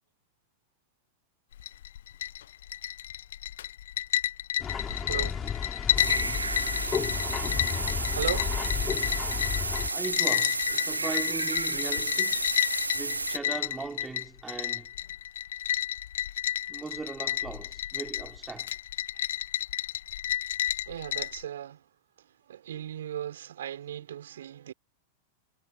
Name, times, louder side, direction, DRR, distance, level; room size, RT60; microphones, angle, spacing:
sound 1, 1.5-21.4, left 11 dB, 60° left, 1.1 m, -31 dB
sound 2, 4.6-9.9, left 7 dB, 20° left, 4.3 m, -33 dB
voice 1, 5.0-5.5 8.1-8.6 20.9-21.8 22.5-24.7, right 10 dB, 60° right, 4.9 m, -37 dB
sound 3, 6.0-13.4, right 3 dB, 80° right, 0.6 m, -32 dB
voice 2, 9.9-14.9 16.7-18.7, right 4 dB, 10° right, 3.2 m, -39 dB
figure-of-eight pair, 90°, 0 cm